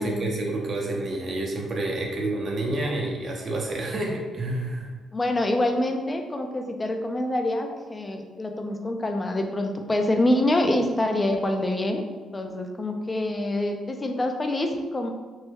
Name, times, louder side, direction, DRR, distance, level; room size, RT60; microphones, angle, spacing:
voice 1, 0.0-4.9, right 2 dB, 45° right, 0 dB, 0.7 m, -29 dB
voice 2, 5.1-12.0 12.3-15.1, left 1 dB, 25° left, 4 dB, 0.4 m, -26 dB
3.0 x 2.1 x 3.4 m, 1.4 s
cardioid pair, 90°, 0 cm